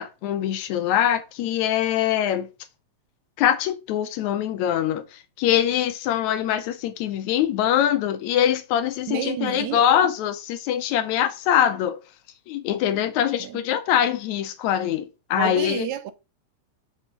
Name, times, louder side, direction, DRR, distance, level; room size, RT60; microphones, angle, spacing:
voice 1, 0.0-2.5 3.4-12.0 12.5-15.9, left 10 dB, 80° left, 2.1 m, -23 dB
voice 2, 9.1-10.1 13.4-13.6 15.4-16.1, right 12 dB, 80° right, 2.0 m, -30 dB
5.6 x 4.7 x 5.1 m
omnidirectional pair, 3.3 m